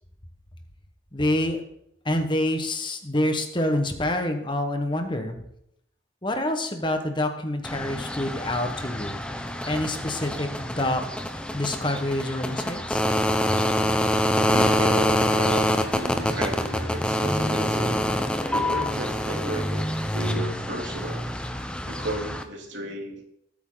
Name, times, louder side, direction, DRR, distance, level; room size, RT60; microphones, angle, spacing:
voice 1, 1.1-1.6 2.0-5.4 6.2-9.2 9.7-11.0 11.5-13.1, left 1 dB, 25° left, 5 dB, 1.5 m, -27 dB
sound 1, 7.6-22.4, equal, 5° left, 0.8 m, -26 dB
voice 2, 14.3-18.0 18.5-19.9 20.1-21.2 21.9-23.2, right 1 dB, 80° right, 1 dB, 3.2 m, -34 dB
20.0 x 8.8 x 4.0 m, 0.74 s
head